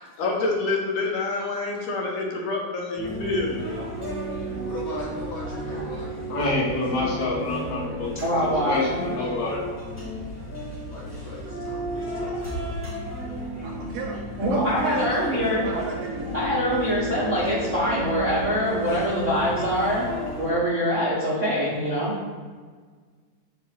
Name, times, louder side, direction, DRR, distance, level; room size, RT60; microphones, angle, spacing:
voice 1, 0.2-3.7 17.4-17.5, left 3 dB, 85° left, -1 dB, 2.7 m, -27 dB
sound 1, 3.0-20.5, right 1 dB, 5° right, 1.1 m, -32 dB
voice 2, 4.6-6.6 10.9-12.8, left 2 dB, 45° left, -6 dB, 1.6 m, -40 dB
voice 3, 6.3-8.2 8.6-9.6, left 2 dB, 65° left, -5 dB, 2.7 m, -27 dB
voice 4, 8.2-9.0 14.4-15.7 16.3-20.1 20.4-22.1, equal, 45° right, -9 dB, 0.9 m, -24 dB
voice 5, 13.6-16.3, right 3 dB, 80° right, 1 dB, 1.7 m, -36 dB
7.8 x 2.9 x 5.8 m, 1.6 s
omnidirectional pair, 3.6 m